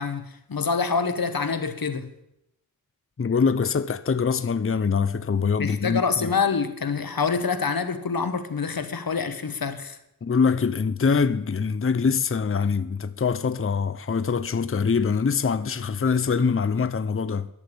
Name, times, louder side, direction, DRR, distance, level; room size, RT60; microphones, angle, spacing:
voice 1, 0.0-2.1 5.6-10.0, left 5 dB, 85° left, 1.2 m, -26 dB
voice 2, 3.2-6.3 10.2-17.5, left 5 dB, 40° left, 0.7 m, -24 dB
11.5 x 8.8 x 8.4 m
wide cardioid pair, 50°, 35 cm